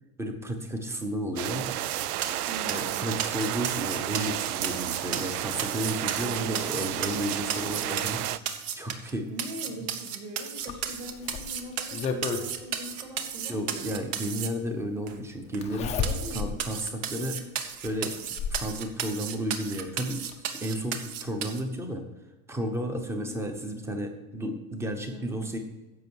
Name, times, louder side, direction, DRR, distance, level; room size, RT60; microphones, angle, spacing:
voice 1, 0.2-1.7 2.7-9.3 13.5-16.0 16.3-17.4 17.8-18.1 18.5-22.0 22.5-25.6, equal, 5° right, 5 dB, 0.8 m, -33 dB
sound 1, 1.4-8.4, right 14 dB, 90° right, 0.6 m, -32 dB
sound 2, 1.8-9.1 9.4-14.5 15.1-15.2 15.5-15.6 16.0-21.6, right 8 dB, 60° right, 1.3 m, -34 dB
voice 2, 2.5-3.1 6.1-6.7 9.3-14.1 16.0-16.7 17.0-17.5 23.0-23.4 25.1-25.5, equal, 35° right, 2 dB, 2.5 m, -42 dB
Zipper (clothing), 10.7-12.5 13.9-14.0 15.6-16.6 17.1-17.2 17.9-18.7 19.9-20.0 20.3-20.4, left 6 dB, 15° left, 0.5 m, -32 dB
10.5 x 7.5 x 4.6 m, 1.1 s
supercardioid pair, 170°, 43 cm